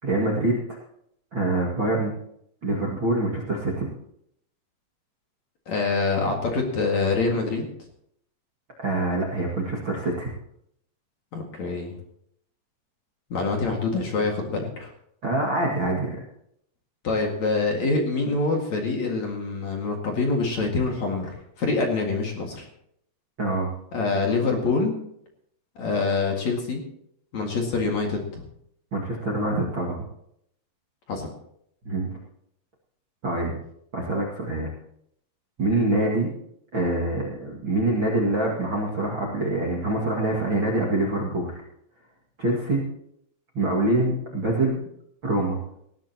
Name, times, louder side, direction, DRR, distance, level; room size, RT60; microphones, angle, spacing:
voice 1, 0.0-0.8 1.3-2.1 2.6-3.9 8.8-10.3 15.2-16.2 23.4-23.7 28.9-30.0 31.8-32.1 33.2-33.5 33.9-34.7 35.6-36.3 36.7-41.6 42.4-42.8 43.5-44.9 45.2-45.6, right 2 dB, 40° right, -4 dB, 1.8 m, -25 dB
voice 2, 5.7-7.7 11.3-11.9 13.3-14.9 17.0-21.3 21.6-22.7 23.9-25.0 25.8-26.8 27.3-28.4 31.1-31.3, left 3 dB, 50° left, 1 dB, 2.6 m, -25 dB
19.5 x 15.5 x 2.9 m, 0.71 s
omnidirectional pair, 5.3 m